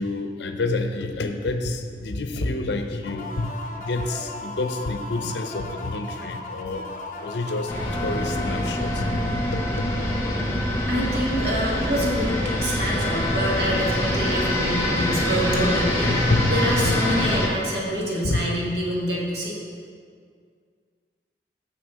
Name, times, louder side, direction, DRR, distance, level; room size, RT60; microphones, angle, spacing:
voice 1, 0.0-3.5 3.8-6.9 7.2-9.9 16.1-16.6 16.8-17.0 18.2-18.5, left 2 dB, 85° left, 6 dB, 0.7 m, -28 dB
sound 1, 3.0-10.6, left 2 dB, 45° left, 0.6 m, -36 dB
sound 2, 7.7-17.5, left 1 dB, 15° left, 1.0 m, -24 dB
voice 2, 10.9-12.3 12.6-19.6, equal, 70° right, -3 dB, 1.8 m, -26 dB
6.8 x 6.3 x 5.7 m, 2.1 s
head